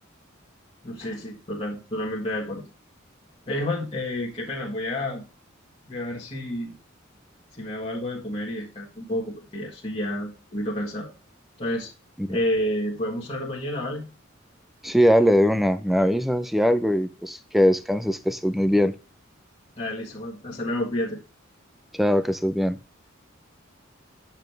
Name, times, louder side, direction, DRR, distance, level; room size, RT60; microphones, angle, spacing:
voice 1, 0.8-2.6 3.5-5.2 5.9-6.7 7.6-11.1 11.6-11.9 12.3-14.1 19.8-21.2, left 1 dB, 30° left, -5 dB, 1.7 m, -30 dB
voice 2, 14.8-18.9 21.9-22.8, equal, ahead, 11 dB, 0.5 m, -21 dB
8.8 x 6.1 x 3.3 m, 0.31 s
head